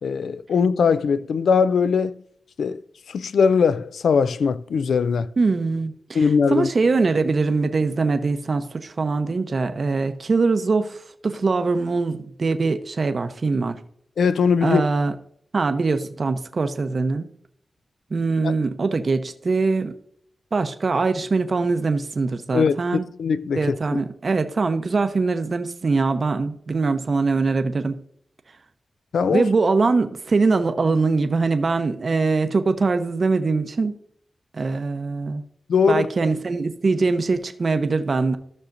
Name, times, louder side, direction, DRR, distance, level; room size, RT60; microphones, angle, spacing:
voice 1, 0.0-2.1 2.6-2.8 3.1-5.3 6.1-6.7 14.2-14.8 18.4-18.5 22.5-22.8 23.2-24.0 29.1-29.5 35.7-36.1, left 5 dB, 85° left, 0.3 m, -20 dB
voice 2, 5.4-13.8 14.6-15.1 15.5-17.3 18.1-19.9 20.5-23.1 23.5-28.0 29.3-33.9 34.5-35.4 35.9-38.4, right 3 dB, 45° right, 0.7 m, -22 dB
14.5 x 6.4 x 2.5 m
wide cardioid pair, 120°, 0 cm